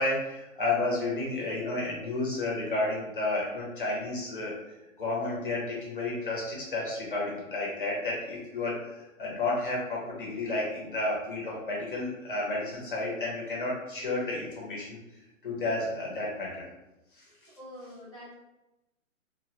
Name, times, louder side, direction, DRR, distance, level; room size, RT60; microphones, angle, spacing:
voice 1, 0.0-4.5 5.0-8.8 9.2-15.0 15.4-16.6 17.2-17.3, left 2 dB, 40° left, -4 dB, 0.7 m, -31 dB
voice 2, 17.6-18.3, equal, 20° right, -16 dB, 0.5 m, -45 dB
2.2 x 2.1 x 2.8 m, 0.98 s
hypercardioid pair, 175°, 41 cm